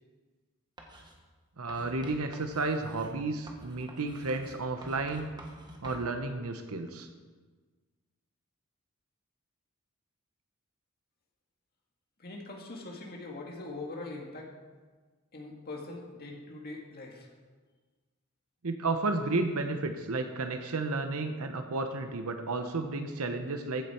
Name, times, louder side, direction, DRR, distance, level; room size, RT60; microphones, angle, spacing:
Writing, 0.8-1.2 1.7-6.1, right 1 dB, 20° right, 1.4 m, -49 dB
voice 1, 1.6-5.3 5.8-7.1 18.6-23.9, right 3 dB, 75° right, 7 dB, 0.9 m, -32 dB
voice 2, 12.2-14.5 15.3-17.3, left 2 dB, 45° left, 0 dB, 2.1 m, -42 dB
15.0 x 8.5 x 4.4 m, 1.4 s
head